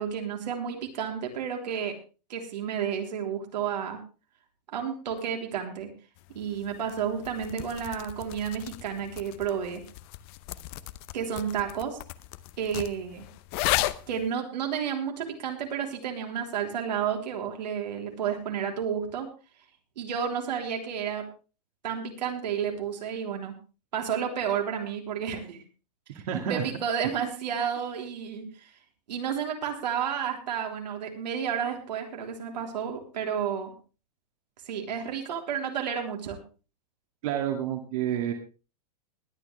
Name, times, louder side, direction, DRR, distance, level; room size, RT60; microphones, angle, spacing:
voice 1, 0.0-1.9 2.3-4.0 4.7-5.9 6.3-9.8 11.1-12.0 12.6-13.3 14.1-19.3 20.0-21.2 21.8-23.5 23.9-25.6 26.1-28.7 29.1-33.7 34.6-36.4, right 8 dB, 85° right, 3 dB, 3.5 m, -31 dB
sound 1, 6.2-14.3, left 17 dB, 35° left, 0.7 m, -35 dB
voice 2, 26.3-26.6 37.2-38.3, right 10 dB, 55° right, 4 dB, 2.0 m, -29 dB
20.5 x 9.0 x 3.4 m, 0.34 s
supercardioid pair, 160°, 21 cm